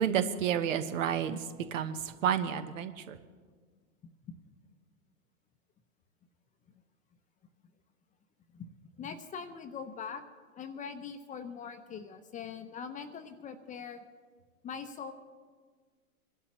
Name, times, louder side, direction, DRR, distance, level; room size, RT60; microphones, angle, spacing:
voice 1, 0.0-1.4 1.7-2.0 2.2-3.2, right 9 dB, 65° right, 10 dB, 1.1 m, -30 dB
voice 2, 8.5-10.2 10.5-14.0 14.6-15.1, left 6 dB, 20° left, 9 dB, 0.7 m, -42 dB
24.0 x 12.0 x 3.1 m, 1.5 s
hypercardioid pair, 110°, 42 cm